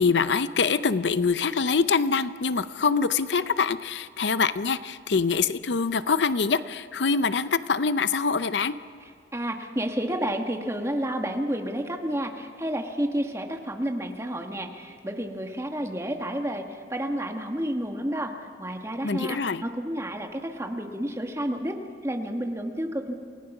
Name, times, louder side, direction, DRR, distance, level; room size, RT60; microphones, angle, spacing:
voice 1, 0.0-8.7 19.0-19.6, left 5 dB, 75° left, 13 dB, 0.6 m, -24 dB
voice 2, 9.0-23.1, right 1 dB, 15° right, 3 dB, 1.5 m, -30 dB
28.0 x 18.0 x 6.0 m, 2.4 s
head